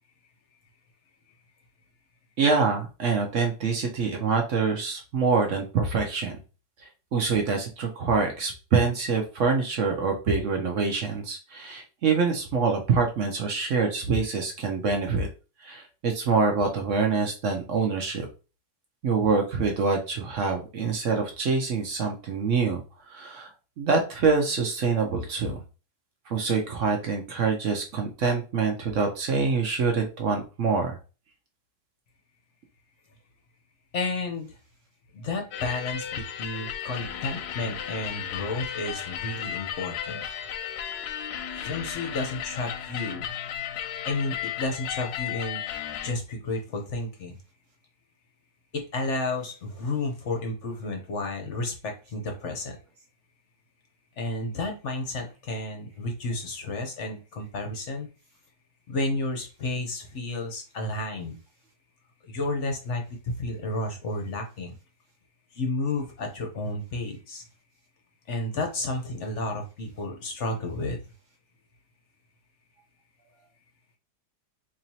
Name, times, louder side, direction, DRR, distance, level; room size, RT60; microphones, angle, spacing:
voice 1, 2.4-6.4 7.1-15.3 15.6-18.3 19.0-22.8 23.1-23.5 23.8-25.6 26.3-31.0, right 4 dB, 60° right, 3 dB, 0.9 m, -25 dB
voice 2, 33.9-34.5 35.1-40.3 41.6-43.3 44.0-45.6 46.0-47.4 48.7-52.8 54.2-58.1 58.9-61.4 62.3-64.8 65.5-67.4 68.3-71.0, left 2 dB, 55° left, 3 dB, 0.9 m, -31 dB
sound 1, 35.5-46.1, left 10 dB, 75° left, 1.1 m, -34 dB
4.4 x 2.9 x 2.7 m, 0.33 s
omnidirectional pair, 1.8 m